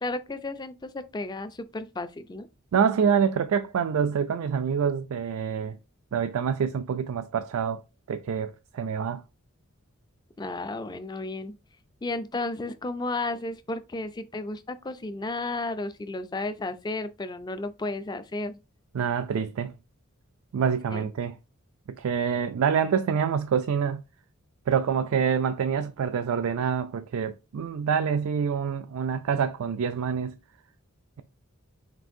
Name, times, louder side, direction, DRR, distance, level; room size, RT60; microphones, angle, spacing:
voice 1, 0.0-2.5 10.4-11.5 12.0-18.6 20.9-21.1, left 2 dB, 20° left, 0.3 m, -33 dB
voice 2, 2.7-5.8 6.1-7.8 8.1-9.2 18.9-19.7 20.5-21.3 22.0-24.0 24.7-30.4, right 7 dB, 75° right, 0.3 m, -26 dB
6.0 x 2.5 x 2.6 m
head